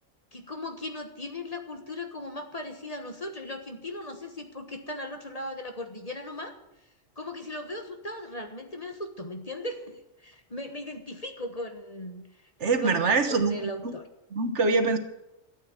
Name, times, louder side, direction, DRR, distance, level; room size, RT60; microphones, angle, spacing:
voice 1, 0.3-6.6 7.2-12.5 12.8-14.0, left 1 dB, 30° left, 5 dB, 1.4 m, -38 dB
voice 2, 12.6-13.9 14.3-15.0, right 3 dB, 65° right, 8 dB, 1.5 m, -24 dB
13.0 x 8.7 x 9.0 m, 0.89 s
omnidirectional pair, 1.3 m